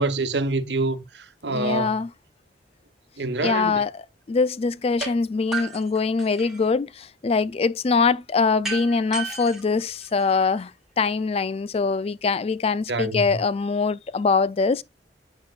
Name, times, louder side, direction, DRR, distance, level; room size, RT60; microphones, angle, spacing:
voice 1, 0.0-2.0 3.2-3.7 12.9-13.4, right 2 dB, 80° right, 1.2 m, -26 dB
voice 2, 1.5-2.1 3.4-10.7 11.0-14.8, left 4 dB, 35° left, 0.4 m, -23 dB
sound 1, 5.0-5.1 5.5-6.7 8.6-10.6, right 3 dB, 5° right, 2.1 m, -34 dB
8.7 x 8.1 x 2.4 m
head